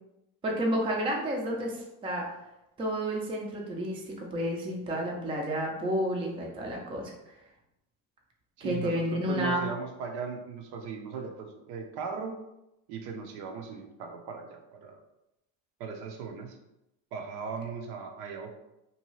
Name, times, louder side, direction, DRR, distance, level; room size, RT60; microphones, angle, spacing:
voice 1, 0.4-2.3 2.8-7.1 8.6-9.6, equal, 15° right, -1 dB, 0.4 m, -31 dB
voice 2, 8.6-12.4 12.9-15.0 15.8-16.6 17.1-18.5, right 5 dB, 60° right, 3 dB, 0.6 m, -38 dB
2.7 x 2.2 x 3.0 m, 0.89 s
supercardioid pair, 105°, 43 cm